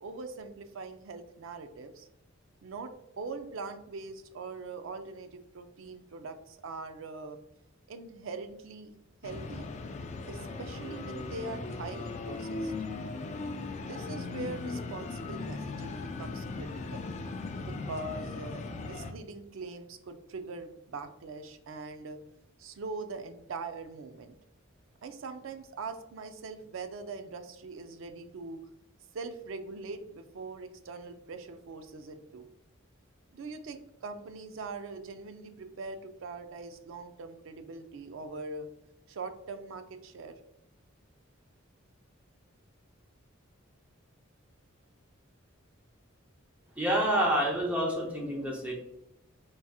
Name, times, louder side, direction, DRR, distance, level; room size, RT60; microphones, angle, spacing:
voice 1, 0.0-2.1 2.6-7.4 7.9-9.0 9.2-9.7 10.3-12.7 13.7-17.1 17.6-22.2 22.6-24.4 25.0-28.6 29.1-32.5 33.3-38.7 39.1-40.4, right 3 dB, 70° right, 9 dB, 0.4 m, -42 dB
sound 1, 9.2-19.1, left 3 dB, 35° left, 0.3 m, -38 dB
voice 2, 46.8-48.7, right 1 dB, 5° right, -2 dB, 0.6 m, -28 dB
4.6 x 2.8 x 2.3 m, 0.84 s
head